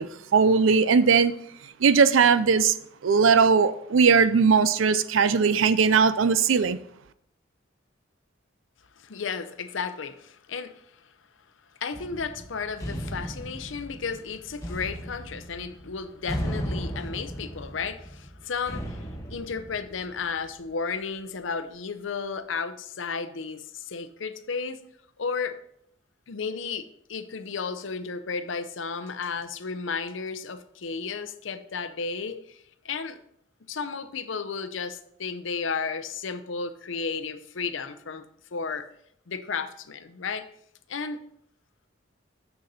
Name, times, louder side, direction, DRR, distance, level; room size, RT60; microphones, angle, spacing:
voice 1, 0.0-1.3 1.8-2.8 3.0-6.8, right 5 dB, 75° right, 0.5 m, -19 dB
voice 2, 9.0-10.8 11.8-24.8 25.2-25.6 26.3-33.2 33.7-38.2 38.5-38.9 39.3-40.5 40.9-41.2, left 5 dB, 70° left, 0.6 m, -33 dB
sound 1, 11.9-20.6, equal, 15° left, 1.1 m, -36 dB
6.8 x 6.6 x 4.2 m
head